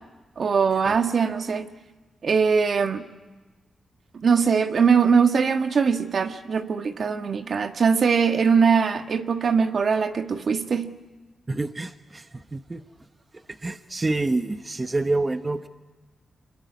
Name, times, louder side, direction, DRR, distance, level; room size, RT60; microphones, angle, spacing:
voice 1, 0.4-1.7 2.2-3.0 4.1-10.9, right 6 dB, 60° right, 7 dB, 1.5 m, -21 dB
voice 2, 11.5-12.8 13.3-15.7, right 2 dB, 30° right, 9 dB, 1.1 m, -28 dB
24.5 x 22.0 x 9.4 m, 1.2 s
cardioid pair, 65°, 0 cm